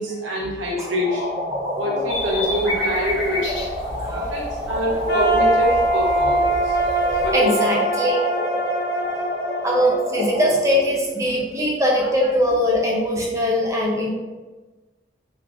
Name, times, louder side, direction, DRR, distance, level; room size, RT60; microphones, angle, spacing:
voice 1, 0.0-1.5 1.7-3.5 4.1-6.8 7.2-7.6, equal, 85° right, -2 dB, 0.9 m, -25 dB
sound 1, 0.8-10.7, equal, 35° right, 1.3 m, -29 dB
voice 2, 1.8-2.4 3.9-4.3 4.8-5.0 6.2-6.3 6.7-6.9 7.3-8.2 9.6-14.1, equal, 15° right, -3 dB, 0.6 m, -22 dB
sound 2, 2.1-7.3, left 1 dB, 80° left, 1.0 m, -31 dB
sound 3, 5.1-11.0, right 1 dB, 60° left, 0.7 m, -23 dB
3.5 x 3.1 x 2.5 m, 1.2 s
head